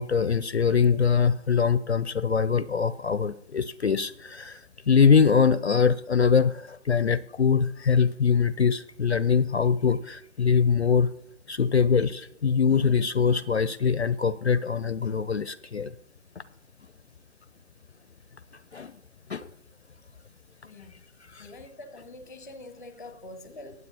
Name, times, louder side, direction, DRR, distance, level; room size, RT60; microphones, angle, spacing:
voice 1, 0.0-4.6 4.9-11.1 11.5-15.9 18.7-18.9 19.3-19.5 21.3-21.5, left 6 dB, 55° left, 17 dB, 0.5 m, -23 dB
voice 2, 21.4-23.7, left 2 dB, 15° left, 10 dB, 0.8 m, -44 dB
20.5 x 8.0 x 2.8 m, 0.79 s
figure-of-eight pair, 155°, 40 cm